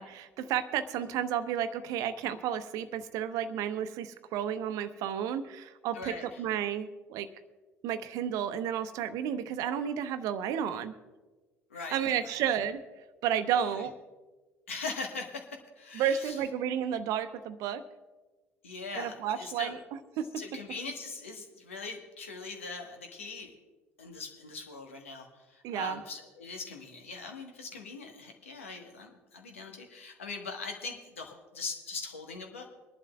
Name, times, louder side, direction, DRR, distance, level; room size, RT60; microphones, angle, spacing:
voice 1, 0.0-7.3 7.8-10.9 11.9-12.8 13.2-13.9 15.9-17.8 18.9-19.8 20.2-20.3 25.6-26.0, right 9 dB, 55° right, 11 dB, 0.8 m, -32 dB
voice 2, 5.9-6.4 11.7-12.5 13.7-13.9 14.7-15.5 15.8-16.4 18.6-19.8 20.4-23.5 24.0-32.7, left 4 dB, 80° left, 3 dB, 1.4 m, -41 dB
24.0 x 11.5 x 2.4 m, 1.2 s
figure-of-eight pair, 55°, 7 cm